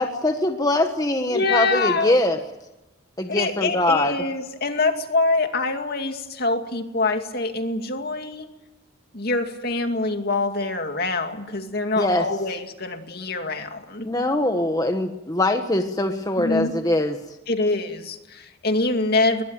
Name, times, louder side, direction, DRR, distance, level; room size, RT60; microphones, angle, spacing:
voice 1, 0.0-2.4 3.2-4.1 12.0-12.2 14.0-17.2, left 1 dB, 20° left, 5 dB, 1.4 m, -22 dB
voice 2, 1.3-2.1 3.3-8.5 9.1-14.1 16.4-16.7 17.5-19.4, left 3 dB, 50° left, 6 dB, 2.4 m, -25 dB
22.0 x 20.0 x 9.0 m, 0.99 s
head